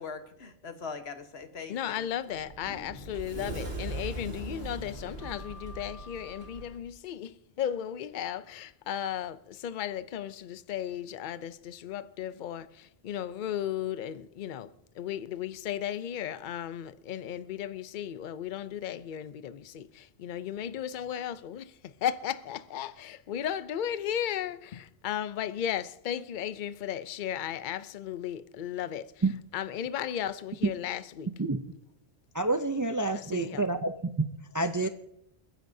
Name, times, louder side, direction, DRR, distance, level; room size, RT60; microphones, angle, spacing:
voice 1, 0.0-2.0, left 5 dB, 75° left, 1.4 m, -41 dB
voice 2, 1.7-21.7 22.0-29.2 29.5-31.3 33.1-33.6, left 10 dB, 55° left, 0.7 m, -35 dB
Sliding door, 2.0-6.8, right 1 dB, 55° right, 2.3 m, -40 dB
voice 3, 32.3-33.9 34.2-34.3 34.5-34.9, right 2 dB, 30° right, 0.3 m, -28 dB
29.5 x 10.0 x 2.7 m
omnidirectional pair, 1.1 m